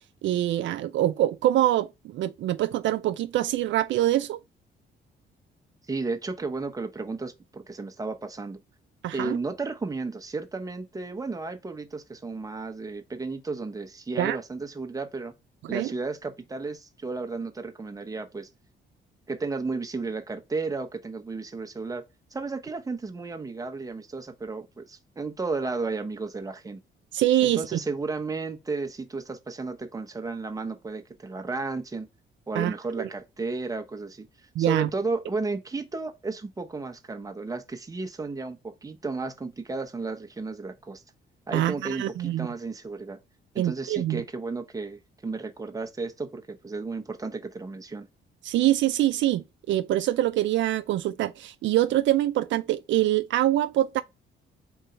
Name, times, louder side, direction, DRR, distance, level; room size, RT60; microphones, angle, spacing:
voice 1, 0.2-4.4 9.0-9.4 14.2-14.4 15.6-15.9 27.1-27.8 32.5-33.1 34.6-34.9 41.5-42.5 43.6-44.2 48.4-54.0, right 13 dB, 70° right, 0.4 m, -25 dB
voice 2, 5.9-8.6 9.1-15.3 15.7-18.5 19.3-22.0 22.3-26.8 27.4-32.1 32.5-34.3 34.6-41.0 41.5-43.2 43.5-48.1, right 3 dB, 15° right, 0.8 m, -33 dB
3.8 x 2.7 x 4.4 m
cardioid pair, 90°, 20 cm